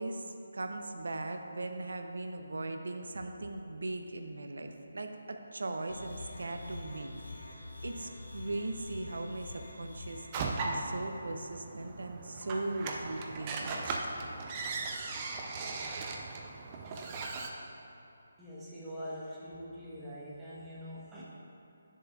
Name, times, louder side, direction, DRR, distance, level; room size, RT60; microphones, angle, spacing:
voice 1, 0.0-7.1 7.5-13.9, right 2 dB, 70° right, 5 dB, 0.6 m, -39 dB
sound 1, 5.9-10.3, left 2 dB, 85° left, 1.7 m, -46 dB
sound 2, 10.3-17.5, right 3 dB, 25° right, 0.5 m, -38 dB
voice 2, 18.4-21.2, equal, 10° right, -8 dB, 1.2 m, -43 dB
10.5 x 6.9 x 2.4 m, 2.8 s
figure-of-eight pair, 155°, 0 cm